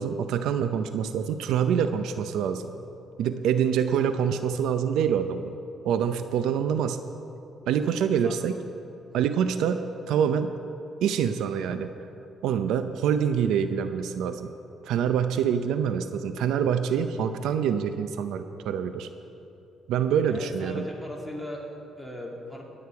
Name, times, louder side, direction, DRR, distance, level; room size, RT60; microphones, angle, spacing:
voice 1, 0.0-2.7 3.2-5.6 5.8-7.0 7.7-8.6 9.1-10.5 11.0-11.9 12.4-14.5 14.8-19.1 19.9-20.8, right 8 dB, 85° right, 9 dB, 0.5 m, -26 dB
voice 2, 20.3-22.6, left 1 dB, 5° right, -1 dB, 2.6 m, -38 dB
20.5 x 8.6 x 4.7 m, 2.8 s
cardioid pair, 90°, 0 cm